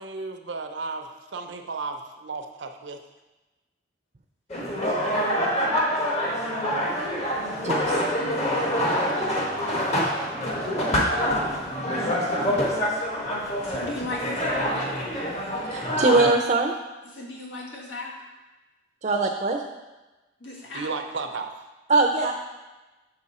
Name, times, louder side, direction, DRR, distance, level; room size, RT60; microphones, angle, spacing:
voice 1, 0.0-3.0 20.7-21.5, right 4 dB, 80° right, 6 dB, 0.6 m, -34 dB
sound 1, 4.5-16.3, equal, 35° left, 1.1 m, -26 dB
voice 2, 5.0-5.8 6.1-6.3 13.6-15.1 17.0-18.2 20.4-20.9, left 2 dB, 85° left, -3 dB, 1.7 m, -37 dB
voice 3, 7.6-8.0 15.7-16.7 19.0-19.6 21.9-22.3, right 3 dB, 40° right, 1 dB, 0.5 m, -22 dB
7.2 x 4.9 x 4.2 m, 1.1 s
head